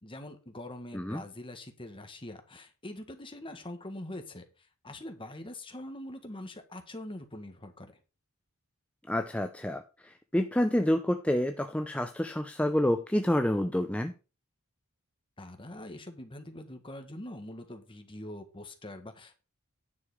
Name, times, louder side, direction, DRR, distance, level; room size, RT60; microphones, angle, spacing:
voice 1, 0.0-7.9 15.4-19.4, left 1 dB, 25° left, 6 dB, 1.7 m, -43 dB
voice 2, 9.1-14.1, left 1 dB, 5° left, 7 dB, 0.6 m, -28 dB
10.0 x 6.9 x 5.0 m, 0.32 s
head